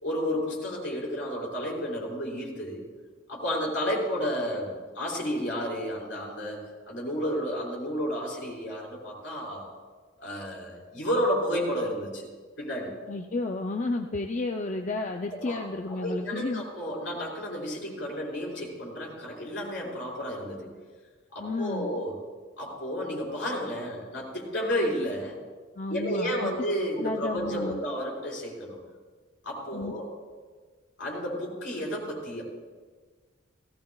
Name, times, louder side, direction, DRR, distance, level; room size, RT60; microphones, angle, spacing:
voice 1, 0.0-2.8 3.3-9.7 10.2-12.3 12.6-12.9 15.3-15.6 15.9-20.7 21.3-22.2 22.6-25.4 25.9-28.8 29.4-30.1 31.0-32.4, equal, 65° left, -3 dB, 4.7 m, -31 dB
voice 2, 13.1-16.6 21.4-21.9 25.8-26.6 27.0-27.8 29.7-29.9, left 2 dB, 35° left, 4 dB, 0.5 m, -32 dB
18.0 x 16.5 x 2.4 m, 1.4 s
head